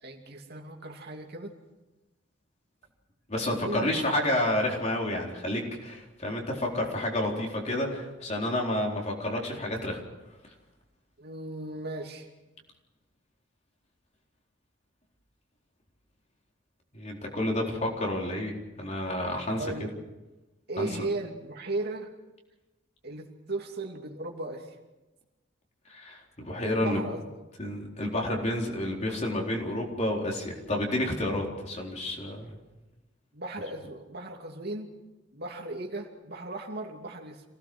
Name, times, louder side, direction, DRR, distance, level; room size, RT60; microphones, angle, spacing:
voice 1, 0.0-1.5 3.4-3.9 11.2-12.3 19.5-19.9 20.7-22.1 23.0-24.7 26.8-27.2 33.3-34.9 35.3-37.4, right 2 dB, 55° right, 2 dB, 2.8 m, -36 dB
voice 2, 3.3-10.0 16.9-19.7 20.8-20.9 25.9-27.0 27.6-32.5, left 1 dB, 35° left, -1 dB, 4.1 m, -30 dB
27.0 x 17.5 x 6.3 m, 1.1 s
head